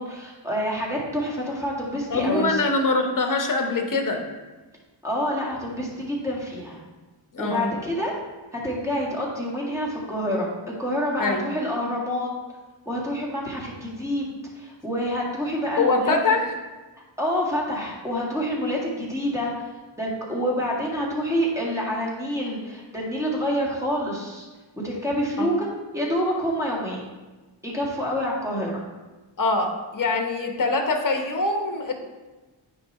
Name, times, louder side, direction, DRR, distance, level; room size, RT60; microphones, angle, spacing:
voice 1, 0.0-2.6 5.0-6.8 7.4-8.1 8.5-10.5 10.8-12.3 12.9-16.2 17.2-19.5 20.0-24.5 24.8-25.7 25.9-27.0 27.6-28.7, equal, 5° right, -4 dB, 1.8 m, -27 dB
voice 2, 2.1-4.2 7.3-7.7 11.2-11.4 15.8-16.5 25.4-25.5 29.4-31.9, left 3 dB, 40° left, 4 dB, 1.0 m, -23 dB
9.4 x 3.2 x 4.2 m, 1.2 s
wide cardioid pair, 100°, 48 cm